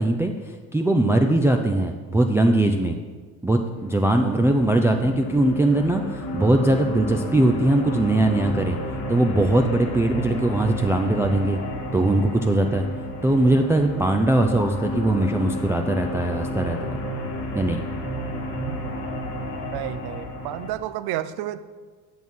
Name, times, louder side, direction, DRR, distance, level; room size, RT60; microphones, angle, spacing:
voice 1, 0.0-3.0 3.4-8.8 9.1-11.6 11.9-12.8 13.2-16.9 17.6-17.8, right 1 dB, 5° right, 4 dB, 0.4 m, -21 dB
sound 1, 3.7-20.7, equal, 90° left, 1.8 m, -31 dB
voice 2, 19.7-21.6, right 13 dB, 75° right, 13 dB, 0.7 m, -31 dB
9.6 x 6.1 x 5.4 m, 1.4 s
cardioid pair, 115°, 39 cm